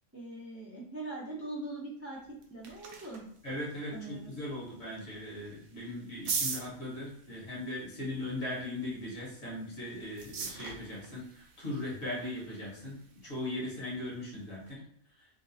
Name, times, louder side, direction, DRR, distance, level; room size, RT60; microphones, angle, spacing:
voice 1, 0.1-3.2 3.9-4.3, right 2 dB, 20° right, -5 dB, 0.4 m, -41 dB
sound 1, 2.2-14.7, right 5 dB, 90° right, 1.1 m, -44 dB
voice 2, 3.4-14.8, left 1 dB, 50° left, -5 dB, 1.6 m, -39 dB
3.6 x 2.5 x 2.7 m, 0.65 s
omnidirectional pair, 1.4 m